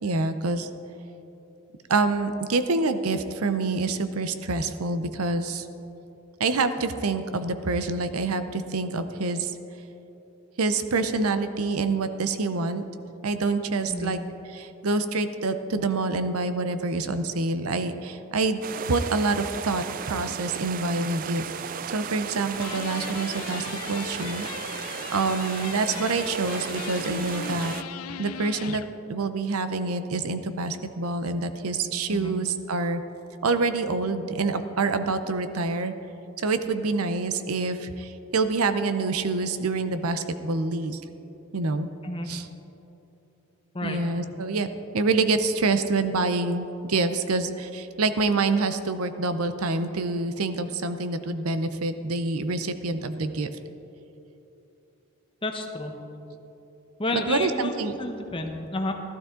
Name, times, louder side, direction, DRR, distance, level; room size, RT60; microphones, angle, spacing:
voice 1, 0.0-0.7 1.9-5.7 6.4-9.5 10.6-12.8 13.2-14.2 14.5-18.6 18.9-21.5 21.9-24.5 25.1-27.7 28.2-28.8 29.1-33.0 33.4-35.9 36.4-41.0 41.5-41.9 42.3-42.5 43.8-44.7 44.9-53.5 57.1-57.9, right 3 dB, 85° right, 10 dB, 0.7 m, -26 dB
sound 1, 18.6-27.8, right 7 dB, 40° right, 0.3 m, -35 dB
sound 2, 22.5-28.9, left 8 dB, 85° left, 0.4 m, -38 dB
voice 2, 55.4-55.9 57.0-58.9, left 1 dB, 25° left, 3 dB, 0.9 m, -31 dB
15.0 x 12.5 x 3.8 m, 3.0 s
head